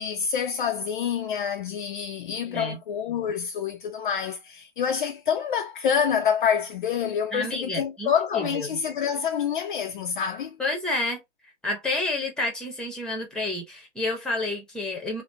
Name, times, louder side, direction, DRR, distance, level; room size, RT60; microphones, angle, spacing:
voice 1, 0.0-10.6, left 7 dB, 45° left, 0.4 m, -27 dB
voice 2, 2.5-2.8 7.3-8.7 10.6-11.2 11.6-15.2, left 2 dB, ahead, 0.9 m, -29 dB
3.2 x 2.1 x 4.0 m
hypercardioid pair, 130°, 37 cm